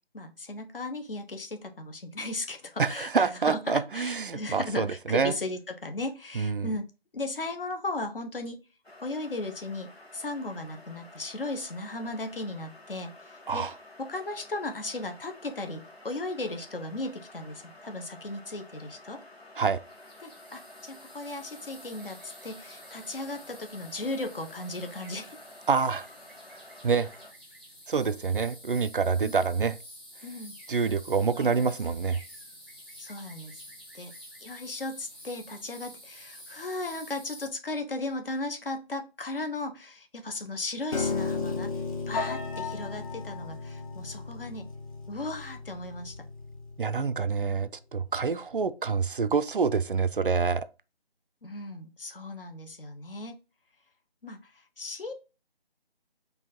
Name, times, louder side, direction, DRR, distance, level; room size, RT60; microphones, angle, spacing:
voice 1, 0.1-6.9 7.1-8.6 9.0-13.6 14.0-19.2 20.2-25.4 29.2-29.3 30.2-30.5 31.4-31.7 33.0-33.6 33.9-34.1 34.4-41.7 42.1-44.7 45.1-46.1 51.4-53.4 54.2-54.5 54.8-55.1, left 2 dB, 65° left, 1.1 m, -36 dB
voice 2, 2.8-5.3 6.3-6.7 13.5-13.7 19.6-19.8 25.7-26.1 26.5-27.1 27.9-29.8 30.7-32.2 46.8-50.7, right 5 dB, 60° right, 0.4 m, -27 dB
sound 1, 8.8-27.3, left 2 dB, 90° left, 1.7 m, -51 dB
sound 2, 19.9-37.5, equal, 10° left, 0.6 m, -49 dB
Piano, 40.9-47.1, left 4 dB, 35° left, 0.9 m, -35 dB
4.7 x 2.7 x 4.2 m
figure-of-eight pair, 160°, 31 cm